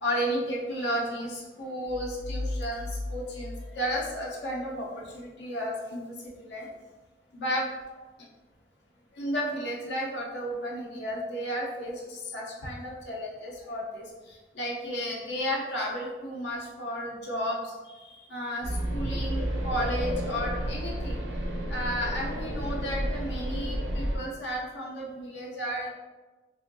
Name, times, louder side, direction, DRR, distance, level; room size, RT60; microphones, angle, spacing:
voice 1, 0.0-6.7 7.3-7.7 9.1-21.2 21.7-25.9, equal, 70° left, -3 dB, 0.7 m, -33 dB
sound 1, 1.9-4.7, left 2 dB, 45° left, 0.3 m, -36 dB
sound 2, 18.6-24.2, equal, 80° right, 0.6 m, -31 dB
3.4 x 2.6 x 2.6 m, 1.2 s
head